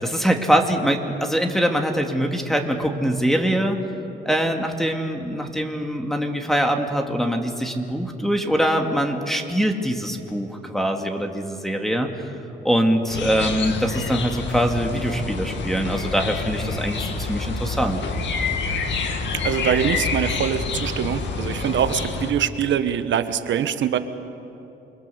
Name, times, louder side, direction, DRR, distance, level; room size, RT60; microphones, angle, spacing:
voice 1, 0.0-3.8 4.2-12.3 12.6-18.0, equal, ahead, 3 dB, 2.4 m, -23 dB
sound 1, 13.1-22.3, left 4 dB, 65° left, 2.2 m, -27 dB
voice 2, 19.4-24.0, right 9 dB, 70° right, 10 dB, 1.4 m, -23 dB
28.5 x 22.0 x 7.1 m, 2.8 s
cardioid pair, 90°, 20 cm